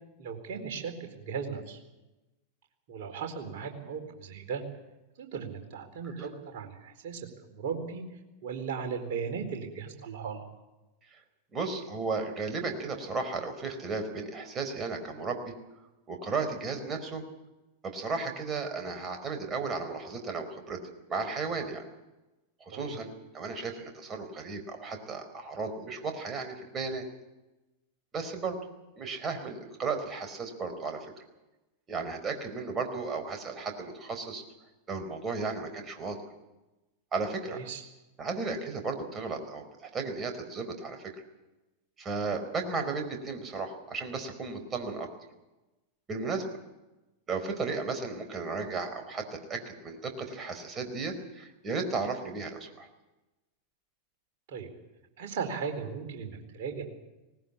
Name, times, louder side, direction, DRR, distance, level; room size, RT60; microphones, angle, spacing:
voice 1, 0.2-1.8 2.9-4.6 5.2-8.0 8.4-10.4 22.7-22.9 37.5-37.8 54.5-54.7 55.2-56.8, right 6 dB, 50° right, 4 dB, 4.3 m, -37 dB
voice 2, 11.5-15.5 16.1-17.2 17.8-20.8 21.1-21.8 22.6-27.0 28.1-28.6 29.0-31.1 31.9-34.4 34.9-36.2 37.1-37.6 38.2-41.2 42.0-45.1 46.1-46.4 47.3-52.9, right 4 dB, 20° right, 5 dB, 4.4 m, -34 dB
19.5 x 19.0 x 8.6 m, 1.0 s
figure-of-eight pair, 90°, 0 cm